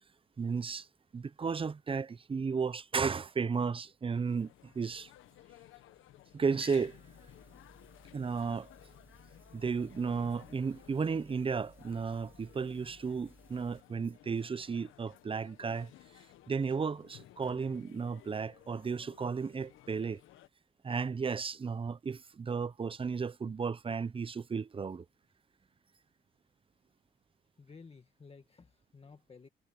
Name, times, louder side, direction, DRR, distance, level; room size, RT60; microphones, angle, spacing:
voice 1, 0.4-0.9 1.1-5.1 6.3-7.0 8.1-8.7 9.5-15.9 16.5-20.2 20.8-25.0, right 5 dB, 25° right, 0.7 m, -34 dB
sound 1, 4.1-20.5, left 14 dB, 85° left, 1.2 m, -57 dB
sound 2, 6.7-13.8, right 1 dB, 10° right, 4.2 m, -61 dB
voice 2, 27.6-29.5, left 4 dB, 30° left, 1.9 m, -54 dB
cardioid pair, 90°, 20 cm